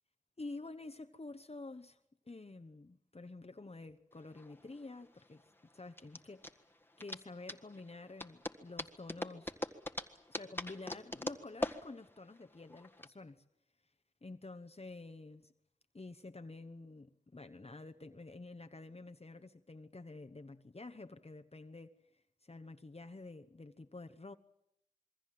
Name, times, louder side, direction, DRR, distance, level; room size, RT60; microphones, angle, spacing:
voice 1, 0.4-2.0 2.3-5.4 5.7-6.5 7.0-9.5 10.3-13.4 14.2-15.5 15.9-21.9 22.4-24.4, left 2 dB, 50° left, 1.1 m, -49 dB
sound 1, 4.2-13.1, left 1 dB, 15° left, 1.7 m, -43 dB
27.0 x 23.0 x 7.7 m
wide cardioid pair, 55°, 14 cm